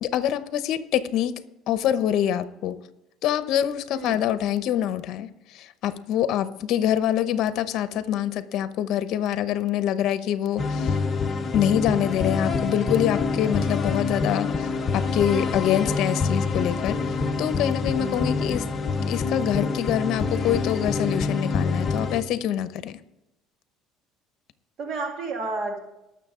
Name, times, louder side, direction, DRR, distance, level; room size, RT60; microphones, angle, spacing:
voice 1, 0.0-1.4 1.7-2.8 3.2-11.0 11.5-18.7 19.0-23.0, left 10 dB, 60° left, 13 dB, 0.8 m, -25 dB
voice 2, 3.9-4.2 17.9-18.2 24.8-25.8, right 3 dB, 50° right, 3 dB, 2.1 m, -31 dB
sound 1, 10.6-22.2, left 4 dB, 30° left, 0.9 m, -26 dB
19.0 x 6.7 x 3.8 m, 0.92 s
cardioid pair, 120°, 0 cm